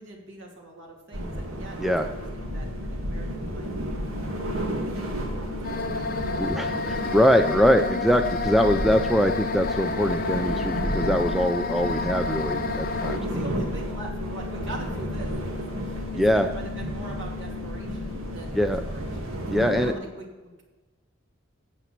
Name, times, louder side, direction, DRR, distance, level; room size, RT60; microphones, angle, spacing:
voice 1, 0.0-6.6 6.9-7.5 13.2-20.6, right 1 dB, 60° right, -1 dB, 2.6 m, -43 dB
sound 1, 1.1-19.9, right 1 dB, 80° right, 1.8 m, -32 dB
sound 2, 1.7-19.2, left 10 dB, 80° left, 0.4 m, -41 dB
sound 3, 5.6-13.2, left 4 dB, 40° left, 0.7 m, -30 dB
voice 2, 6.4-13.2 16.1-16.5 18.6-18.8 19.5-19.9, equal, ahead, 5 dB, 0.4 m, -23 dB
9.1 x 8.2 x 5.9 m, 1.2 s
head